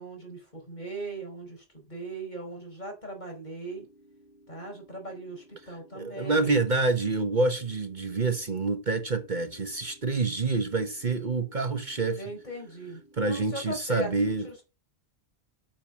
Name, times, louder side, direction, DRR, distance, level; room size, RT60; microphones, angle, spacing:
voice 1, 0.0-3.9 4.5-6.6 12.1-14.1 14.4-14.6, right 1 dB, 45° left, 4.9 m, -39 dB
sound 1, 3.7-13.7, right 1 dB, 20° right, 4.5 m, -58 dB
voice 2, 5.9-12.2 13.2-14.5, right 3 dB, 45° right, 1.2 m, -27 dB
8.8 x 6.9 x 7.2 m
omnidirectional pair, 1.1 m